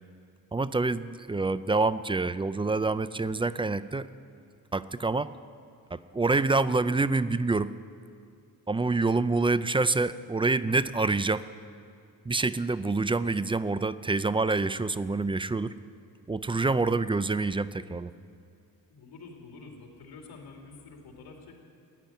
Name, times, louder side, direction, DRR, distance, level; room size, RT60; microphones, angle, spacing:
voice 1, 0.5-4.1 4.7-5.3 5.9-7.7 8.7-11.4 12.3-15.7 16.3-18.1, right 3 dB, 15° right, 15 dB, 0.4 m, -27 dB
voice 2, 18.9-21.5, left 4 dB, 80° left, 1 dB, 2.7 m, -48 dB
15.0 x 10.5 x 9.1 m, 2.3 s
cardioid pair, 95°, 37 cm